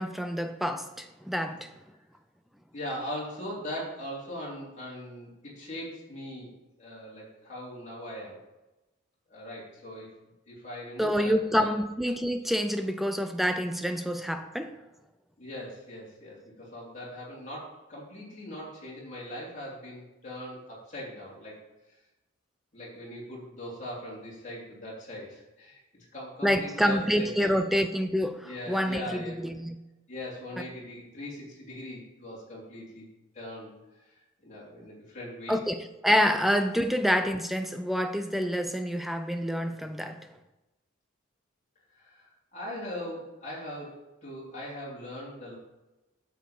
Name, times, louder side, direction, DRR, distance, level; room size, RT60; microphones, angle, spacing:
voice 1, 0.0-1.7 11.0-14.8 26.4-29.7 35.5-40.2, equal, ahead, 8 dB, 0.4 m, -27 dB
voice 2, 2.7-6.5 6.8-8.4 9.3-10.1 10.5-11.7 15.4-21.6 22.7-27.6 28.4-29.4 30.1-33.0 33.3-34.1 34.4-35.6 42.0-45.6, left 1 dB, 35° left, -6 dB, 3.1 m, -40 dB
9.0 x 7.2 x 4.4 m, 1.0 s
head